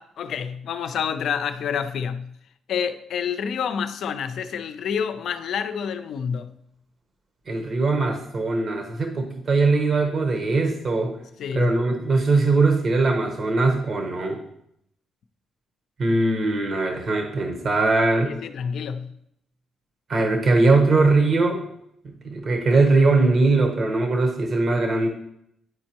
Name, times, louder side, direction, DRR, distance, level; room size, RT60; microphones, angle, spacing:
voice 1, 0.0-2.3 2.7-6.6 11.4-11.7 18.2-19.1, left 7 dB, 70° left, 0.5 m, -28 dB
voice 2, 7.5-11.1 11.5-14.4 16.0-18.3 20.1-21.6 22.2-25.1, right 3 dB, 50° right, 1.0 m, -21 dB
9.8 x 4.4 x 2.9 m
cardioid pair, 90°, 0 cm